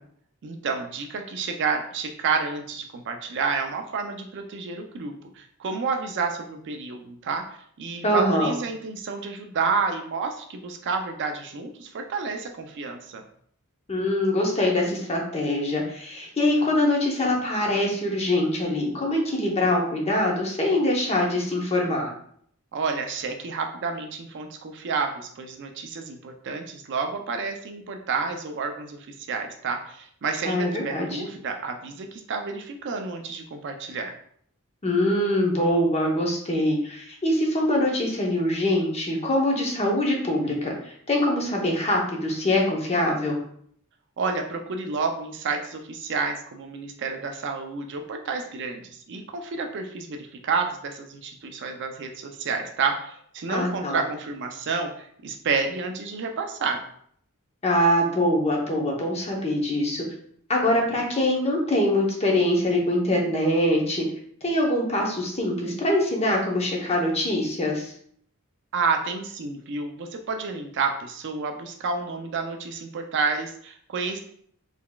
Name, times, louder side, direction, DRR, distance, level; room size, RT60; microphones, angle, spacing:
voice 1, 0.4-7.4 7.8-13.2 22.7-29.0 29.3-34.1 44.2-48.8 49.1-56.8 68.7-74.2, right 4 dB, 55° right, 4 dB, 0.4 m, -30 dB
voice 2, 8.0-8.5 13.9-22.1 30.4-31.2 34.8-43.4 53.5-54.0 57.6-60.1 60.5-64.1 64.4-67.9, left 1 dB, 30° left, 0 dB, 0.7 m, -23 dB
3.8 x 3.4 x 2.2 m, 0.64 s
head